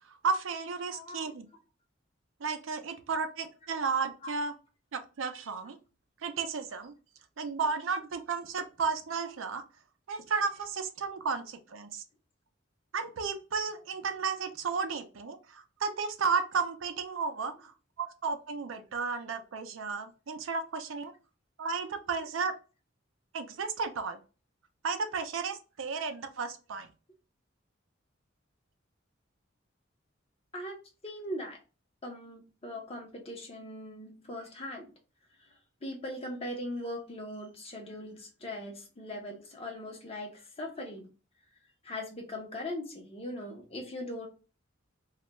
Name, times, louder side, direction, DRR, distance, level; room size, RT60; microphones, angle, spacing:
voice 1, 0.1-1.5 2.4-4.5 4.9-5.8 6.2-6.9 7.4-9.6 10.1-12.0 12.9-21.1 21.6-22.5 23.3-24.2 24.8-26.9, right 5 dB, 85° right, 8 dB, 0.5 m, -33 dB
voice 2, 0.9-1.2 30.5-30.8 31.0-31.6 32.0-34.9 35.8-41.1 41.8-44.3, left 1 dB, 30° left, 2 dB, 0.7 m, -40 dB
2.3 x 2.1 x 2.9 m, 0.33 s
head